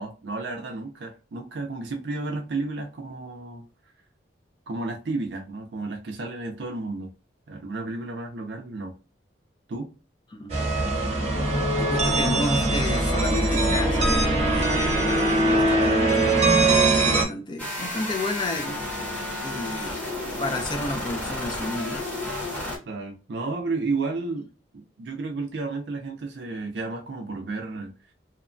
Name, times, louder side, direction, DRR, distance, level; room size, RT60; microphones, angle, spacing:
voice 1, 0.0-3.7 4.7-7.1 7.5-8.9 9.7-9.9 22.9-24.5 24.7-27.9, right 3 dB, 65° right, 0.4 m, -32 dB
sound 1, 10.5-17.2, right 2 dB, 35° right, 0.8 m, -21 dB
voice 2, 11.8-18.8 19.4-20.0 20.4-22.1, left 2 dB, 25° left, 0.3 m, -32 dB
sound 2, 17.6-22.8, left 1 dB, 10° left, 0.8 m, -32 dB
2.8 x 2.1 x 2.5 m
head